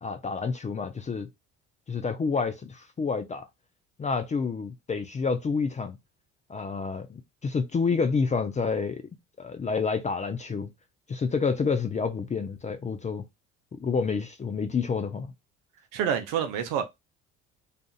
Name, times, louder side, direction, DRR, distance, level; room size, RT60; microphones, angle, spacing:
voice 1, 0.0-1.3 1.9-3.5 4.0-6.0 6.5-9.0 9.4-10.7 11.1-13.2 13.8-15.3, left 5 dB, 20° left, 0.5 m, -28 dB
voice 2, 15.9-16.9, right 8 dB, 60° right, 0.7 m, -27 dB
2.7 x 2.5 x 2.3 m
figure-of-eight pair, 55°, 37 cm